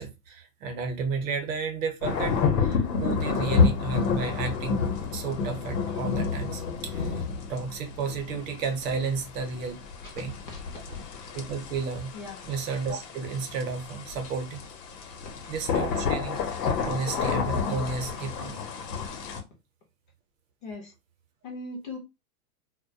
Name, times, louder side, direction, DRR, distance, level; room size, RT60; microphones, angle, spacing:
voice 1, 0.0-4.8 5.1-9.8 10.1-10.3 11.3-12.1 12.4-14.7 15.5-16.4 16.8-18.6, right 5 dB, 55° right, 0.7 m, -32 dB
sound 1, 2.0-19.4, left 5 dB, 80° left, 0.8 m, -29 dB
voice 2, 20.6-20.9 21.4-22.0, left 3 dB, 35° left, 0.5 m, -38 dB
2.2 x 2.1 x 2.6 m
supercardioid pair, 165°, 48 cm